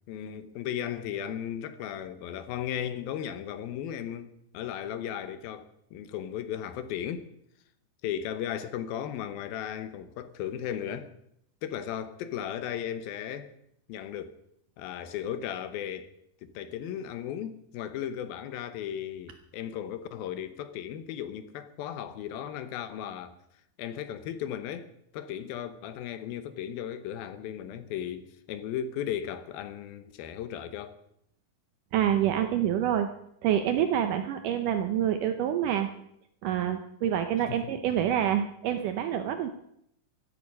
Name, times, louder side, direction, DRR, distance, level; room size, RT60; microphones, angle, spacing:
voice 1, 0.1-7.3 8.0-11.1 11.6-13.5 13.9-14.4 14.8-16.1 16.4-23.4 23.8-31.0 37.5-37.6, left 10 dB, 85° left, 2.9 m, -36 dB
voice 2, 31.9-33.1 33.4-35.9 36.4-39.5, right 10 dB, 75° right, 2.2 m, -27 dB
15.5 x 13.0 x 5.4 m
omnidirectional pair, 4.1 m